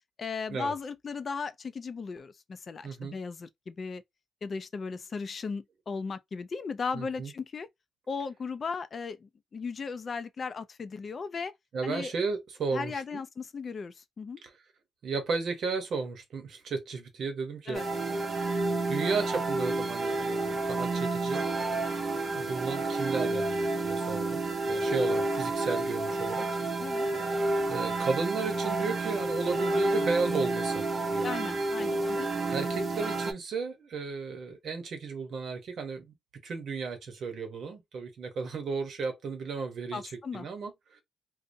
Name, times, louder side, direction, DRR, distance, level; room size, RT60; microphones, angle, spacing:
voice 1, 0.2-4.0 4.4-7.7 8.1-11.5 11.8-12.1 12.7-14.4 17.7-17.9 26.8-27.1 31.2-32.3 39.9-40.5, left 5 dB, 40° left, 0.4 m, -36 dB
voice 2, 2.8-3.2 6.9-7.3 11.7-13.2 14.4-14.5 15.0-17.8 18.9-21.4 22.3-26.5 27.7-30.9 31.1-31.3 32.5-36.1 36.4-41.0, right 4 dB, 60° right, 1.0 m, -34 dB
sound 1, 17.7-33.3, right 2 dB, 40° right, 0.6 m, -30 dB
2.6 x 2.0 x 2.7 m
cardioid pair, 90°, 0 cm